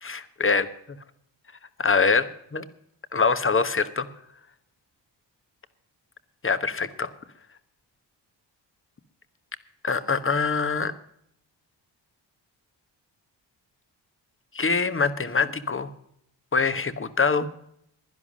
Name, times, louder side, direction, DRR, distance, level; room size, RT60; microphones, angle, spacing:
voice 1, 0.0-0.7 1.8-2.6 3.1-4.1 6.4-7.1 9.8-10.9 14.5-15.9 16.5-17.5, left 4 dB, 30° left, 13 dB, 1.1 m, -24 dB
11.0 x 11.0 x 6.2 m, 0.72 s
cardioid pair, 65°, 45 cm